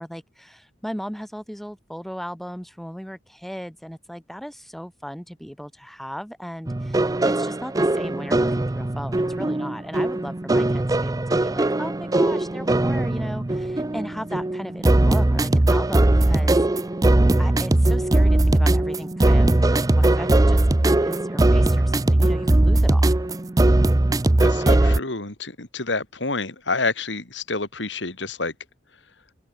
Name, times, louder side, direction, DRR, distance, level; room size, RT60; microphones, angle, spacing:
voice 1, 0.0-16.6 17.4-20.6 21.0-23.2, equal, ahead, 2.9 m, -36 dB
sound 1, 6.7-25.0, right 1 dB, 20° right, 0.5 m, -20 dB
voice 2, 24.4-28.5, left 3 dB, 80° left, 3.5 m, -28 dB
open air
head